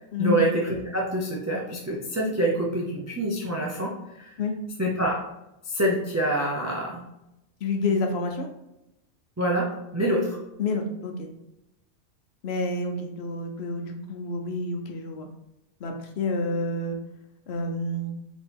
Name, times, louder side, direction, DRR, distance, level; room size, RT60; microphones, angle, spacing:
voice 1, 0.2-4.3 4.8-5.2 5.7-7.0 9.4-10.4, right 1 dB, 25° right, -2 dB, 0.4 m, -26 dB
voice 2, 7.6-8.5 10.6-11.3 12.4-15.3 15.8-17.0 17.5-18.1, left 3 dB, 60° left, 4 dB, 0.9 m, -28 dB
4.1 x 2.9 x 3.5 m, 0.89 s
omnidirectional pair, 1.3 m